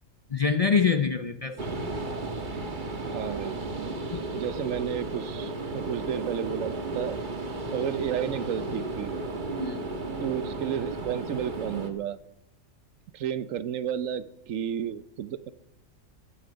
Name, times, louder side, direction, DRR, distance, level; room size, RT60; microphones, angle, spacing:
voice 1, 0.3-1.8 4.1-4.2 7.6-7.8 9.6-9.8, left 5 dB, 50° left, 8 dB, 0.4 m, -26 dB
sound 1, 1.6-11.9, right 2 dB, 40° right, 1.4 m, -34 dB
voice 2, 3.1-3.6 4.3-7.2 7.7-9.1 10.2-12.2 13.1-15.5, right 9 dB, 75° right, 15 dB, 1.0 m, -32 dB
15.5 x 12.0 x 5.1 m, 0.88 s
omnidirectional pair, 1.4 m